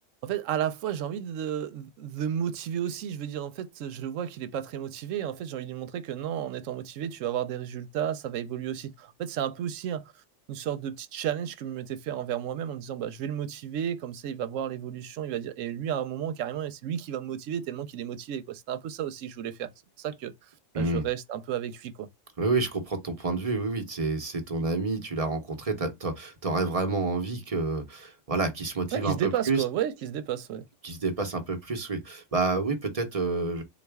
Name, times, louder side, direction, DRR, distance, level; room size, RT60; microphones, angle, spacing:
voice 1, 0.2-10.2 10.5-19.7 20.0-20.3 20.8-22.1 28.9-30.7, right 10 dB, 90° right, 1.0 m, -32 dB
voice 2, 20.7-21.1 22.4-29.6 30.8-33.6, right 3 dB, 35° right, 0.8 m, -29 dB
4.1 x 2.3 x 3.4 m
omnidirectional pair, 1.3 m